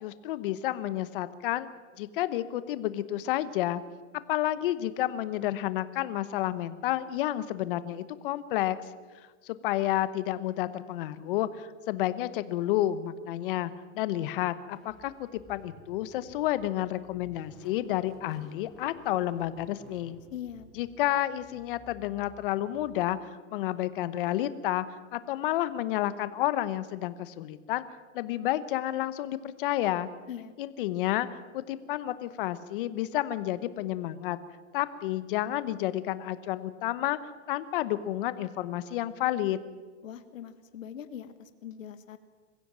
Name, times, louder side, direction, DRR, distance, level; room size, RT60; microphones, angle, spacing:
voice 1, 0.0-1.7 2.0-3.8 4.3-8.8 9.4-20.2 20.8-23.2 23.5-24.8 25.1-27.8 28.1-30.1 30.6-34.4 34.7-37.2 37.5-39.6, left 14 dB, 45° left, 14 dB, 1.0 m, -30 dB
Car / Engine starting, 14.7-23.5, left 2 dB, ahead, 2.5 m, -54 dB
voice 2, 20.3-20.7 30.3-30.5 40.0-42.2, left 9 dB, 85° left, 10 dB, 1.5 m, -42 dB
22.0 x 15.5 x 7.5 m, 1.4 s
hypercardioid pair, 155°, 38 cm